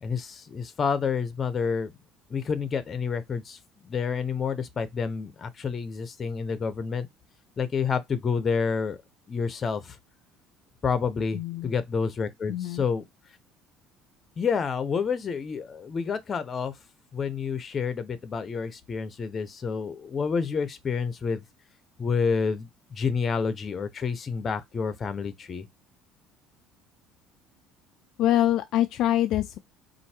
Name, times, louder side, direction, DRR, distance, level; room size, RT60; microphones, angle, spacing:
voice 1, 0.0-1.9 2.3-7.1 7.6-9.0 9.3-10.0 10.8-13.0 14.4-16.7 17.1-21.4 22.0-25.7, left 5 dB, 30° left, 0.8 m, -29 dB
voice 2, 11.3-11.7 12.5-12.8 28.2-29.6, left 12 dB, 60° left, 0.4 m, -24 dB
4.5 x 2.7 x 4.4 m
cardioid pair, 130°, 0 cm